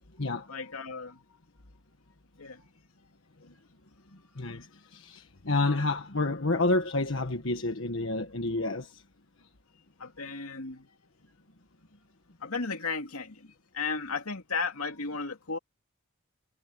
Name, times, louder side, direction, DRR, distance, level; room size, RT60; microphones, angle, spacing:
voice 1, 0.5-1.2 2.4-2.7 10.0-10.9 12.4-15.6, left 4 dB, 85° left, 2.6 m, -35 dB
voice 2, 4.4-9.0, left 2 dB, 65° left, 1.4 m, -29 dB
head